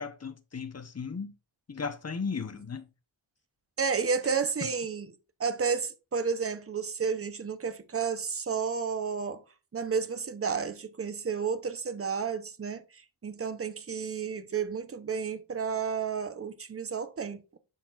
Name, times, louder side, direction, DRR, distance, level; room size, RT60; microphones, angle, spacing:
voice 1, 0.0-1.3 1.7-2.9 4.6-4.7, left 5 dB, 30° left, 1.0 m, -36 dB
voice 2, 3.8-5.1 5.4-9.4 9.7-17.6, right 6 dB, 30° right, 0.9 m, -31 dB
12.0 x 4.2 x 2.5 m
wide cardioid pair, 145°, 47 cm